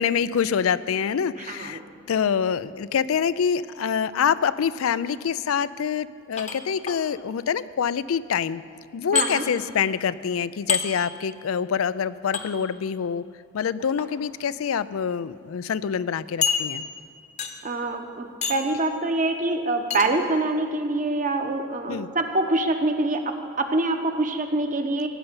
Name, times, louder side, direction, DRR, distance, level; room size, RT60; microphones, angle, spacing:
voice 1, 0.0-1.8 2.1-8.6 8.9-13.2 13.5-16.9 21.9-22.1, left 7 dB, 90° left, 16 dB, 0.4 m, -26 dB
voice 2, 1.5-1.8 9.1-9.4 17.6-25.1, right 2 dB, 40° right, 6 dB, 1.0 m, -25 dB
sound 1, 6.4-7.0 9.2-9.3 10.7-10.9 12.3-12.5 13.8-14.1 14.8-14.9 15.3-15.4 16.4-17.0 17.4-17.7 18.4-18.7 19.9-20.1, left 7 dB, 35° left, 0.9 m, -27 dB
16.0 x 5.5 x 9.6 m, 2.2 s
head